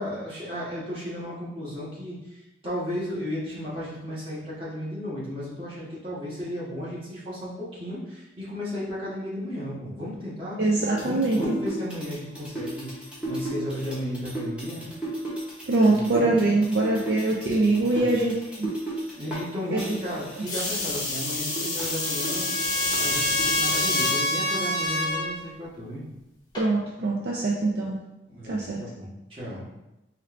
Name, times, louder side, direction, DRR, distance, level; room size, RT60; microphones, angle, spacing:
voice 1, 0.0-10.6 11.0-14.9 15.8-16.4 17.8-18.1 19.1-22.5 22.9-26.0 28.3-29.6, equal, 30° right, -9 dB, 1.4 m, -34 dB
voice 2, 10.6-11.6 15.7-18.7 19.7-19.8 26.6-28.0 28.4-28.8, right 2 dB, 60° right, -2 dB, 0.4 m, -23 dB
sound 1, 10.8-19.5 19.8-23.6, right 1 dB, 5° right, 0.9 m, -35 dB
sound 2, 20.5-24.2 24.8-25.3 26.5-26.6, left 2 dB, 20° left, 0.8 m, -28 dB
Trumpet, 21.5-25.4, left 1 dB, 60° left, 0.5 m, -28 dB
4.3 x 2.5 x 3.2 m, 0.95 s
head